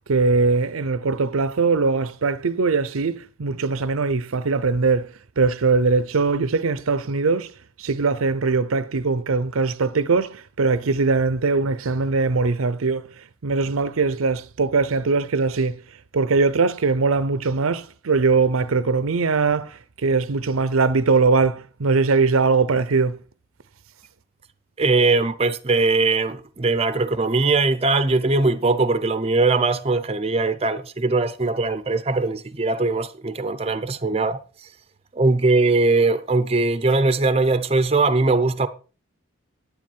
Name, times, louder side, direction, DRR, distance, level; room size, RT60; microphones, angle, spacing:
voice 1, 0.1-5.1 5.4-7.5 7.8-13.0 13.4-15.8 16.1-23.2, right 4 dB, 90° right, 0.7 m, -21 dB
voice 2, 24.8-34.4 35.1-38.7, right 3 dB, 30° right, 0.6 m, -20 dB
10.5 x 9.4 x 4.5 m
head